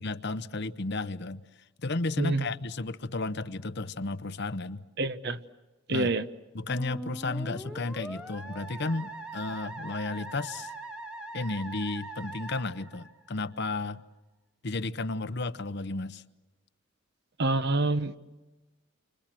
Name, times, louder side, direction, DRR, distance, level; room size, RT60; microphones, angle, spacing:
voice 1, 0.0-1.4 1.8-4.8 5.9-6.1 6.5-10.7 11.3-14.0 14.6-16.2, left 3 dB, 55° left, 0.9 m, -33 dB
voice 2, 5.0-5.4 5.9-6.3 17.4-18.2, right 2 dB, 55° right, 1.0 m, -27 dB
Musical instrument, 6.7-13.6, right 2 dB, 5° right, 1.6 m, -41 dB
29.5 x 25.5 x 7.7 m
head